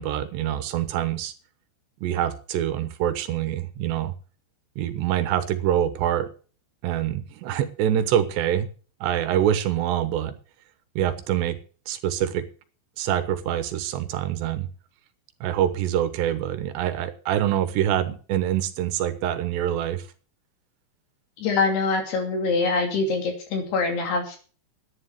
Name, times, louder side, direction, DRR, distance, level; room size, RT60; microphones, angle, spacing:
voice 1, 0.0-1.3 2.0-4.1 4.8-6.3 6.8-8.7 9.0-10.3 11.0-11.6 11.9-12.5 13.0-14.7 15.4-20.0, right 11 dB, 80° right, 10 dB, 3.2 m, -25 dB
voice 2, 21.4-24.4, left 4 dB, 65° left, 3 dB, 4.7 m, -24 dB
11.0 x 10.0 x 6.6 m, 0.40 s
omnidirectional pair, 5.1 m